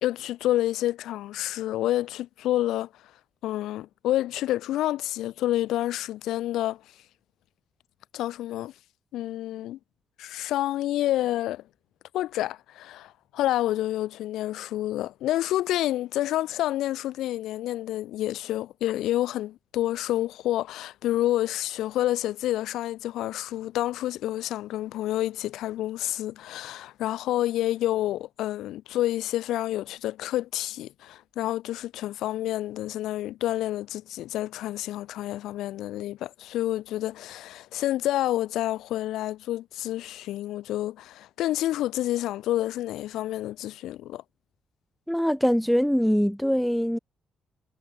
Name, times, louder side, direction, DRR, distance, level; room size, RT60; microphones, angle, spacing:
voice 1, 0.0-2.9 3.4-6.8 8.1-8.7 9.1-9.8 10.2-11.6 12.1-44.2, left 14 dB, 85° left, 1.3 m, -29 dB
voice 2, 45.1-47.0, equal, ahead, 0.9 m, -23 dB
cardioid pair, 90°, 0 cm